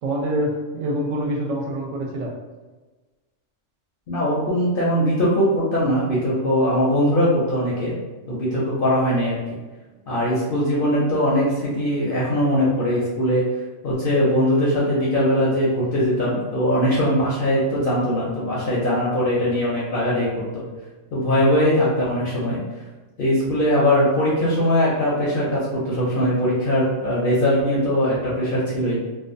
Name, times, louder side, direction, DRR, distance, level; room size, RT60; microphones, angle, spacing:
voice 1, 0.0-2.3, right 1 dB, 75° right, -2 dB, 0.9 m, -25 dB
voice 2, 4.1-7.9 8.3-9.6 10.1-13.4 13.8-20.6 21.1-22.6 23.2-29.0, equal, 60° left, -6 dB, 0.6 m, -21 dB
2.5 x 2.2 x 2.5 m, 1.2 s
omnidirectional pair, 1.4 m